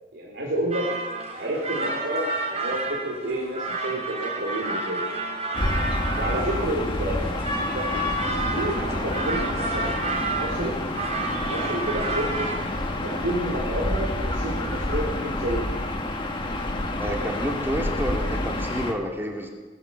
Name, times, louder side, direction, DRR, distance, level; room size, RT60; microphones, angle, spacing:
voice 1, 0.1-0.9 1.4-5.0 5.5-5.8 6.2-8.0 8.5-10.0 10.3-10.8 11.4-12.5 13.0-15.8, right 1 dB, 75° right, -3 dB, 3.5 m, -30 dB
sound 1, 0.7-12.5, right 2 dB, 40° right, 3.3 m, -30 dB
Gull seagull / Ocean, 5.5-18.9, left 1 dB, 30° left, 1.7 m, -28 dB
voice 2, 17.0-19.5, equal, 15° right, 1 dB, 2.4 m, -29 dB
20.0 x 10.0 x 7.1 m, 1.4 s
head